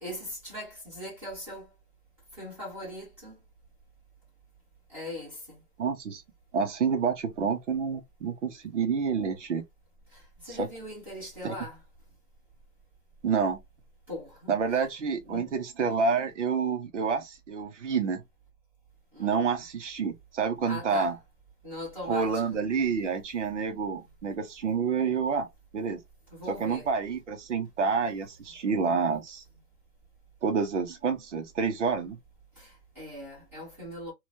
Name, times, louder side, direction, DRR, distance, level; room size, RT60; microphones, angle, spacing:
voice 1, 0.0-1.7 2.4-3.3 4.9-5.6 10.1-11.8 14.1-14.5 15.3-15.5 19.1-19.5 20.7-21.2 21.6-22.4 26.3-26.9 32.6-34.1, left 1 dB, 5° right, 1.2 m, -40 dB
voice 2, 5.8-6.2 6.5-9.6 10.5-10.7 11.4-11.5 13.2-13.6 14.5-18.2 19.2-21.1 22.1-25.5 25.7-26.0 26.5-29.4 30.4-32.2, right 5 dB, 45° right, 0.7 m, -28 dB
2.9 x 2.3 x 2.5 m
hypercardioid pair, 155°, 49 cm